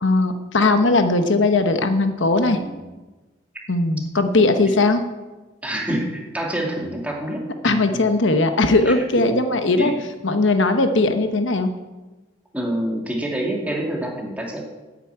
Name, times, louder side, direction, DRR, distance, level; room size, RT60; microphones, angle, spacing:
voice 1, 0.0-2.6 3.7-5.0 7.6-9.9 10.2-11.7, left 2 dB, 70° left, 8 dB, 1.0 m, -19 dB
voice 2, 5.6-8.0 8.9-9.4 9.8-10.0 12.5-14.6, right 1 dB, 5° right, -1 dB, 2.3 m, -27 dB
11.0 x 9.3 x 8.7 m, 1.2 s
head